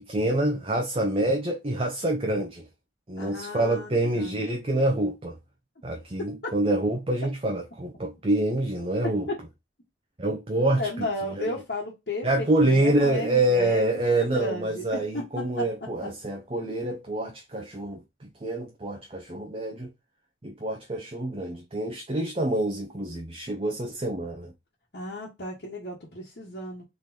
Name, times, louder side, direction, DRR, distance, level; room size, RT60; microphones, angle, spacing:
voice 1, 0.0-2.6 3.1-5.4 5.8-9.3 10.2-11.4 12.2-19.9 20.4-24.5, right 1 dB, 30° right, 0.7 m, -26 dB
voice 2, 3.2-4.4 6.2-6.3 9.3-9.4 10.8-15.6 24.9-26.8, left 1 dB, 60° left, 1.3 m, -34 dB
3.9 x 3.3 x 2.8 m
head